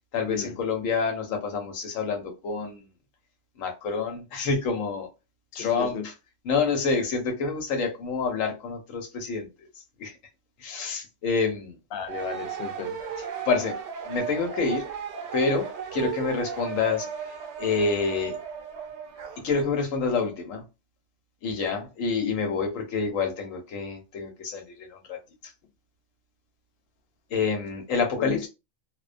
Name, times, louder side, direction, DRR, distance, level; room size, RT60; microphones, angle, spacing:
voice 1, 0.1-2.9 3.6-5.1 5.5-6.1 6.4-9.5 9.7-10.2 10.6-11.8 13.2-13.8 14.1-14.9 15.3-18.4 19.4-20.6 21.4-25.2 25.4-25.5 27.3-28.5, left 4 dB, 85° left, 1.1 m, -28 dB
voice 2, 5.5-6.0 11.9-13.0 28.2-28.4, left 6 dB, 65° left, 0.6 m, -34 dB
sound 1, 12.0-19.7, right 7 dB, 65° right, 0.8 m, -35 dB
2.4 x 2.1 x 2.4 m
omnidirectional pair, 1.3 m